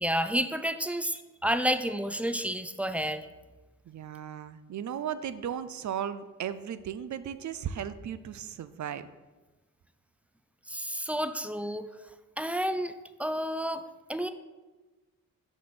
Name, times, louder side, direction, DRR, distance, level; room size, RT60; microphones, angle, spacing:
voice 1, 0.0-3.2 10.7-11.9 12.4-12.9 13.2-13.8 14.1-14.3, equal, 5° right, 10 dB, 0.5 m, -30 dB
voice 2, 3.9-9.1, right 9 dB, 60° right, 13 dB, 0.6 m, -36 dB
6.1 x 4.3 x 6.0 m, 1.2 s
cardioid pair, 65°, 34 cm